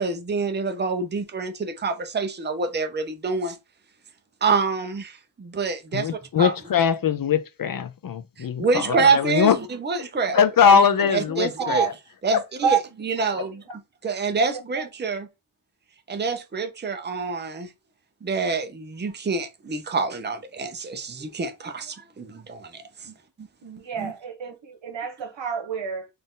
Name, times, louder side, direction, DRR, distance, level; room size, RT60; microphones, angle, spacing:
voice 1, 0.0-3.6 4.4-6.1 6.4-6.5 8.4-9.5 9.8-10.4 10.7-10.8 11.1-11.9 12.2-13.6 14.0-15.3 16.1-17.7 18.2-23.1 23.4-23.5 24.0-24.1, right 4 dB, 25° right, 0.6 m, -26 dB
voice 2, 5.9-9.6 10.0-10.1 10.3-11.9 13.4-13.5 24.0-24.1, left 7 dB, 50° left, 0.5 m, -21 dB
voice 3, 10.3-10.8 11.3-11.9 12.6-12.8 13.2-13.4 13.7-13.8 14.7-14.8 23.0-23.2 23.6-26.1, right 7 dB, 80° right, 1.3 m, -28 dB
4.1 x 2.6 x 3.7 m
wide cardioid pair, 145°, 45 cm